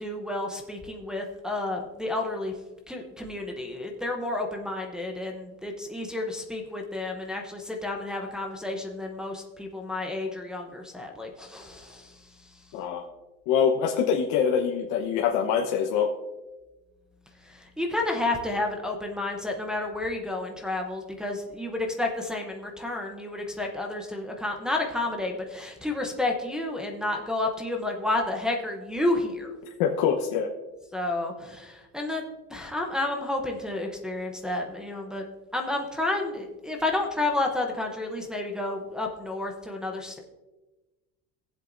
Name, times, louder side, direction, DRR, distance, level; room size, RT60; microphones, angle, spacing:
voice 1, 0.0-2.5 2.9-12.2 17.5-29.5 30.9-32.2 32.5-35.2 35.5-40.2, left 2 dB, ahead, 0 dB, 0.7 m, -31 dB
voice 2, 12.7-13.0 13.5-16.1 29.8-30.5, left 7 dB, 80° left, 0 dB, 1.1 m, -24 dB
20.0 x 7.6 x 2.6 m, 1.2 s
cardioid pair, 170°, 31 cm